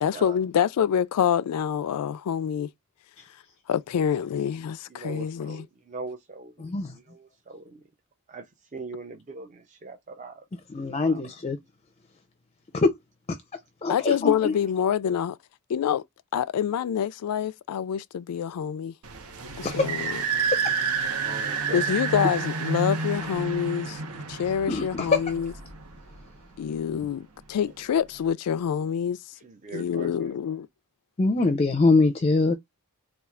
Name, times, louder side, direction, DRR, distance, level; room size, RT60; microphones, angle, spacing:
voice 1, 0.0-2.7 3.7-5.6 13.9-15.4 15.7-16.0 16.3-18.9 19.6-20.2 21.7-25.5 26.6-29.2 29.7-30.7, left 8 dB, 90° left, 0.3 m, -26 dB
voice 2, 4.0-4.4 4.9-7.8 8.3-10.4 11.0-11.2 21.0-21.9 27.6-27.7 29.4-30.3, right 3 dB, 35° right, 0.5 m, -41 dB
voice 3, 6.6-6.9 10.7-11.6 12.7-12.9 13.3-13.4 13.8-14.5 19.6-19.9 24.7-25.2 31.2-32.5, left 3 dB, 30° left, 0.4 m, -23 dB
sound 1, 19.0-26.4, right 5 dB, 80° right, 0.9 m, -29 dB
4.4 x 2.3 x 2.3 m
head